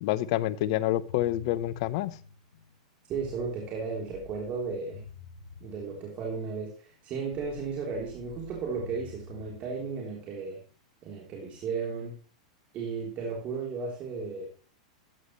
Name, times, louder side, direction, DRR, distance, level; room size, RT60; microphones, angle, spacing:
voice 1, 0.0-2.1, left 14 dB, 60° left, 16 dB, 0.8 m, -27 dB
sound 1, 1.1-10.9, left 3 dB, 80° left, 4.1 m, -50 dB
voice 2, 3.1-5.0 5.6-10.6 11.0-12.1 12.7-14.5, right 5 dB, 40° right, -2 dB, 3.6 m, -34 dB
13.5 x 9.9 x 3.2 m, 0.39 s
hypercardioid pair, 115°, 4 cm